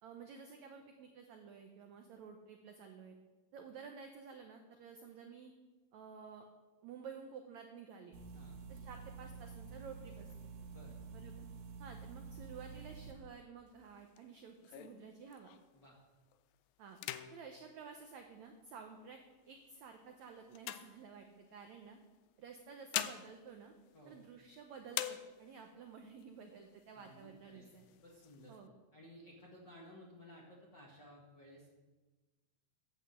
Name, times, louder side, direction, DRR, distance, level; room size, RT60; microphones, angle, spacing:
voice 1, 0.0-3.2 3.5-5.5 5.9-6.4 6.8-8.2 8.7-10.3 11.1-11.5 11.8-15.5 16.8-17.0 17.3-19.2 19.5-22.0 22.4-23.7 24.0-27.9 28.5-28.7, right 6 dB, 85° right, 4 dB, 1.6 m, -52 dB
sound 1, 8.1-13.1, right 5 dB, 70° right, 1.6 m, -49 dB
sound 2, 13.7-15.9 16.3-16.6 16.9-18.8 19.5-21.6 22.5-24.5 24.9-25.8 26.2-26.3 26.6-27.2 27.7-28.6, left 13 dB, 80° left, 2.2 m, -45 dB
voice 2, 26.9-27.7 28.0-28.5 28.9-31.7, left 1 dB, 55° left, -3 dB, 1.2 m, -57 dB
9.6 x 8.1 x 7.5 m, 1.2 s
omnidirectional pair, 4.4 m